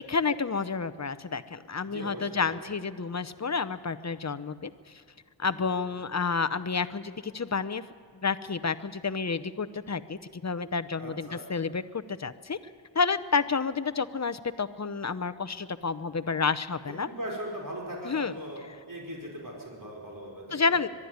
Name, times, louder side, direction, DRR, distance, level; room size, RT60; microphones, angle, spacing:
voice 1, 0.0-4.7 5.4-7.8 8.2-11.8 12.2-12.6 12.9-17.1 18.0-18.4 20.5-20.9, left 5 dB, 40° left, 14 dB, 0.8 m, -30 dB
voice 2, 1.9-2.6 5.7-6.0 11.0-11.5 17.1-20.8, equal, 45° right, -3 dB, 5.4 m, -39 dB
23.0 x 12.0 x 9.5 m, 2.3 s
wide cardioid pair, 70°, 44 cm